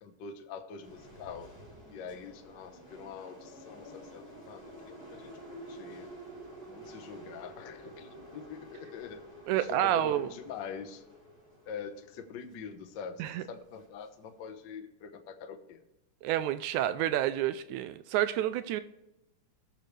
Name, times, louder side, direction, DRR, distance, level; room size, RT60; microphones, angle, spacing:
voice 1, 0.0-1.5 1.9-6.1 6.7-9.2 9.6-11.0 11.7-15.8, left 6 dB, 85° left, 6 dB, 1.0 m, -44 dB
sound 1, 0.8-14.5, right 1 dB, 30° left, 4.5 m, -50 dB
voice 2, 9.5-10.3 13.2-13.4 16.2-18.8, right 12 dB, 80° right, 12 dB, 1.9 m, -29 dB
19.5 x 6.7 x 3.2 m, 0.94 s
omnidirectional pair, 3.6 m